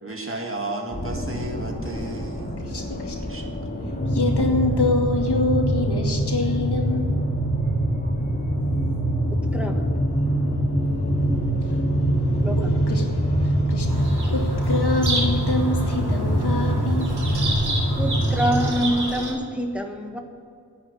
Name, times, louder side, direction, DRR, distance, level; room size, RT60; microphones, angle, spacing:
voice 1, 0.0-2.6 3.2-3.7, right 2 dB, 35° right, 2 dB, 2.0 m, -33 dB
sound 1, 0.9-18.9, left 1 dB, 25° left, 2.4 m, -33 dB
voice 2, 2.6-3.4 4.1-7.1 11.2-17.1, left 3 dB, 80° left, 1 dB, 2.2 m, -27 dB
sound 2, 4.0-18.7, right 1 dB, 60° left, 2.6 m, -23 dB
voice 3, 9.3-9.9 12.4-12.9 18.0-20.2, equal, 5° right, 3 dB, 1.5 m, -26 dB
Bird vocalization bird call bird song, 13.9-19.3, right 2 dB, 75° right, 3.3 m, -30 dB
10.0 x 8.7 x 8.6 m, 2.3 s
wide cardioid pair, 70°, 39 cm